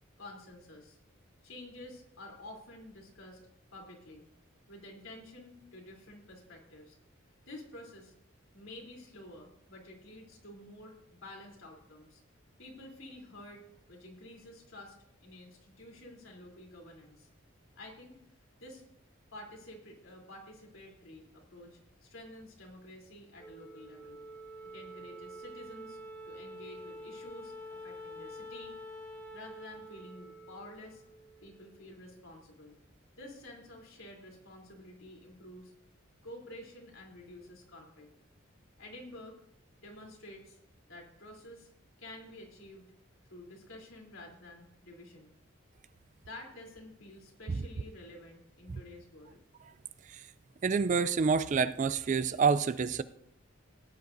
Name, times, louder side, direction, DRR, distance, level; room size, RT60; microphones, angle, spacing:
voice 1, 0.2-1.0 1.4-3.4 3.7-4.3 4.7-7.0 7.5-8.1 8.5-12.2 12.6-13.6 13.9-17.3 17.7-18.1 18.6-18.8 19.3-24.2 24.7-26.0 26.3-28.7 29.3-31.0 31.4-32.8 33.2-35.7 36.2-38.2 38.8-39.4 39.8-40.6 40.9-41.7 42.0-42.9 43.3-45.3 46.2-49.4, left 1 dB, 80° left, 3.4 m, -50 dB
Wind instrument woodwind instrument, 23.4-32.0, equal, 10° left, 1.5 m, -47 dB
voice 2, 50.6-53.0, right 5 dB, 35° right, 0.3 m, -27 dB
17.0 x 11.0 x 2.6 m
head